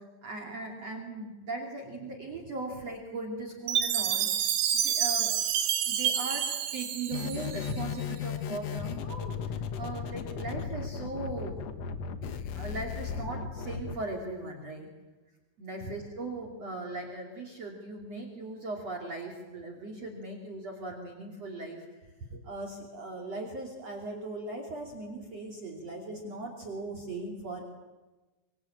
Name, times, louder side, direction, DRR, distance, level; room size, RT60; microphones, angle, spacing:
voice 1, 0.0-4.5 4.7-11.5 12.5-14.9 15.6-21.9 22.3-27.6, right 2 dB, 40° right, 0 dB, 3.6 m, -39 dB
Chime, 3.7-7.9, right 9 dB, 75° right, 3.8 m, -29 dB
sound 1, 7.1-13.9, left 6 dB, 70° left, 1.6 m, -36 dB
25.0 x 23.5 x 8.8 m, 1.2 s
omnidirectional pair, 4.9 m